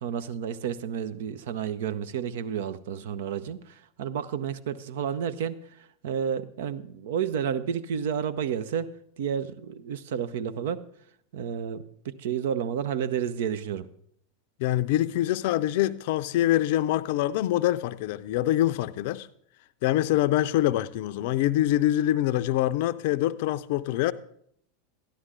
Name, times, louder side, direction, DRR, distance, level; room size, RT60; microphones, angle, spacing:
voice 1, 0.0-5.6 6.0-8.9 9.2-10.9 11.3-13.9, right 8 dB, 65° right, 0.6 m, -31 dB
voice 2, 14.6-19.3 19.8-24.1, left 13 dB, 60° left, 0.4 m, -25 dB
13.0 x 11.0 x 3.8 m
hypercardioid pair, 90°, 0 cm